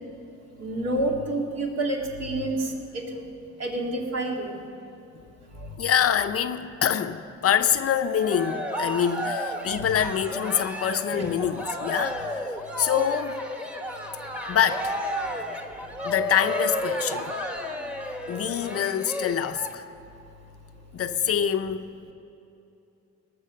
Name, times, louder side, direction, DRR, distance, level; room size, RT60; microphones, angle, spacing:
voice 1, 0.6-3.2 3.6-4.6 5.6-5.7 9.6-9.8 11.2-11.3 15.4-15.5, right 1 dB, 60° right, 2.2 m, -29 dB
voice 2, 5.8-12.5 12.8-13.5 14.5-15.0 16.0-17.4 18.3-19.8 20.9-21.9, left 9 dB, 50° left, 0.6 m, -25 dB
Cheering, 7.9-19.7, equal, 5° right, 1.2 m, -32 dB
18.5 x 6.7 x 6.5 m
cardioid pair, 90°, 30 cm